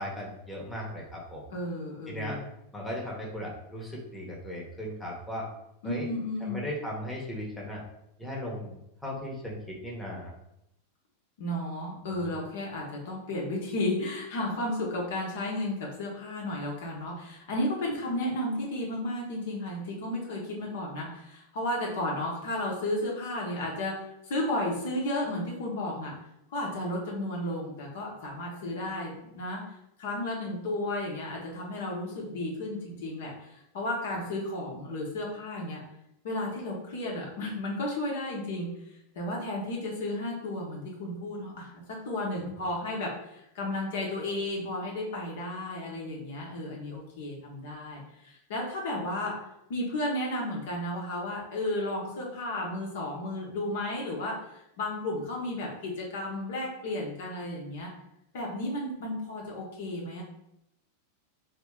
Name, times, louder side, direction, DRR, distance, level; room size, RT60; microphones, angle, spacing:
voice 1, 0.0-1.4 2.1-2.4 2.7-5.5 5.8-6.1 6.4-7.8 8.2-10.3 42.4-42.6, equal, 5° left, -4 dB, 1.0 m, -37 dB
voice 2, 1.5-2.4 5.8-6.6 11.4-26.1 26.5-35.8 36.2-49.3 49.7-57.9 58.3-60.2, left 1 dB, 55° left, -2 dB, 1.0 m, -33 dB
3.0 x 2.9 x 3.7 m, 0.82 s
figure-of-eight pair, 90°, 0 cm